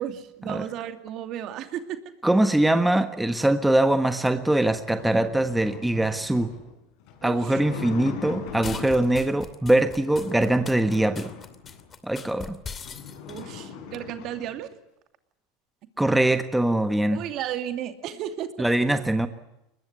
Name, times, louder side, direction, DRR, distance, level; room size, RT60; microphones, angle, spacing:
voice 1, 0.0-2.0 7.2-7.6 13.3-14.7 17.1-18.7, right 10 dB, 50° right, 8 dB, 2.6 m, -33 dB
voice 2, 2.2-6.5 7.2-11.3 12.0-12.6 16.0-17.2 18.6-19.3, right 1 dB, 5° right, 9 dB, 1.4 m, -22 dB
sound 1, 4.2-9.3 9.9-11.9 12.4-12.5 12.7-14.6, left 7 dB, 65° left, 5.5 m, -40 dB
sound 2, 8.5-13.4, left 6 dB, 30° left, 2.6 m, -40 dB
22.5 x 20.5 x 9.6 m, 0.87 s
hypercardioid pair, 100°, 0 cm